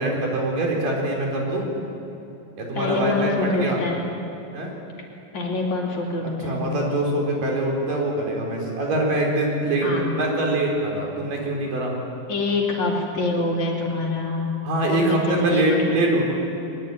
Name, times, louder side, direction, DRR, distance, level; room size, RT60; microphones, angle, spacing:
voice 1, 0.0-1.7 2.6-3.8 4.5-4.8 6.2-11.9 14.7-16.4, right 1 dB, 70° right, 0 dB, 5.5 m, -24 dB
voice 2, 2.7-4.0 5.3-6.6 9.8-10.1 12.3-14.5 14.9-15.9, left 3 dB, 55° left, -1 dB, 4.3 m, -25 dB
22.0 x 21.5 x 9.5 m, 3.0 s
omnidirectional pair, 4.0 m